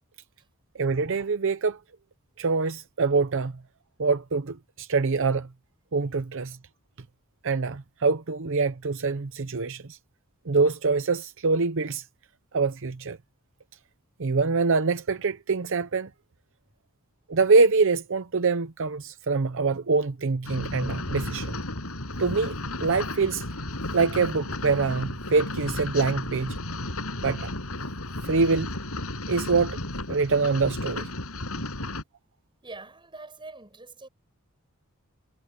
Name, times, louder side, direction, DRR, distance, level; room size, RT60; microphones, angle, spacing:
voice 1, 0.8-1.8 2.4-3.5 4.0-5.5 5.9-6.6 7.4-10.0 10.5-12.0 12.5-13.2 14.2-16.1 17.3-21.6 22.2-22.5 22.8-23.5 23.9-26.6 27.2-27.5 28.2-28.7 29.3-29.8 30.1-31.1, right 4 dB, 60° right, 0.7 m, -24 dB
sound 1, 20.4-32.0, left 2 dB, 80° left, 6.1 m, -33 dB
voice 2, 32.6-34.1, right 3 dB, 20° right, 7.0 m, -44 dB
head